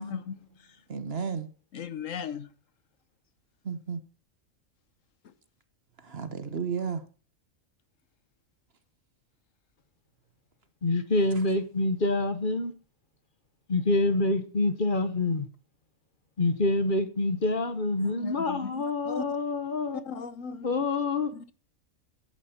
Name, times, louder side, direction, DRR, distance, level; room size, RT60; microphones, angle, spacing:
voice 1, 0.0-0.8 1.7-2.5 5.2-5.3 18.0-19.4 20.0-20.7 21.3-21.5, left 7 dB, 70° left, 1.2 m, -38 dB
voice 2, 0.9-1.5 3.6-4.0 6.0-7.0, right 6 dB, 50° right, 1.3 m, -33 dB
voice 3, 10.8-12.7 13.7-15.5 16.4-20.0 20.6-21.3, left 2 dB, 40° left, 1.2 m, -26 dB
14.0 x 10.5 x 4.3 m
omnidirectional pair, 1.4 m